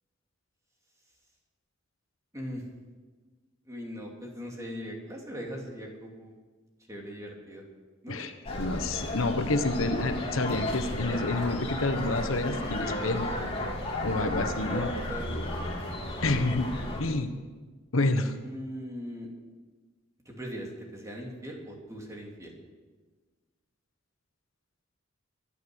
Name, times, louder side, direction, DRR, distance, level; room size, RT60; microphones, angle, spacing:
voice 1, 2.3-2.6 3.7-6.3 6.9-7.6 8.0-8.2 12.1-13.5 14.2-15.6 18.4-19.3 20.2-22.5, equal, 15° right, 0 dB, 2.9 m, -40 dB
sound 1, 8.4-17.0, left 1 dB, 30° left, 2.5 m, -33 dB
voice 2, 8.6-13.3 14.0-14.9 16.2-16.7 17.0-17.3 17.9-18.3, left 2 dB, 85° left, 8 dB, 1.2 m, -28 dB
24.0 x 9.4 x 6.4 m, 1.3 s
head